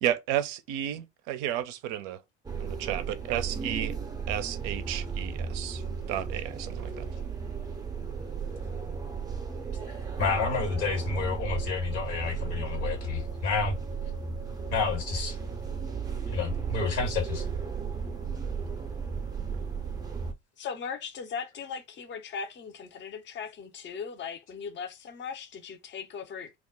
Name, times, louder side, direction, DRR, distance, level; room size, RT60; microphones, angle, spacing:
voice 1, 0.0-2.2 2.6-4.0 4.3-5.8 6.1-7.1, right 11 dB, 60° right, 0.5 m, -32 dB
sound 1, 2.4-20.3, right 5 dB, 10° right, 0.6 m, -35 dB
voice 2, 10.2-13.8 14.7-15.4 16.3-17.4, left 5 dB, 70° left, 1.3 m, -29 dB
voice 3, 20.6-26.6, left 6 dB, 35° left, 0.6 m, -38 dB
2.3 x 2.1 x 3.5 m
hypercardioid pair, 60°, 34 cm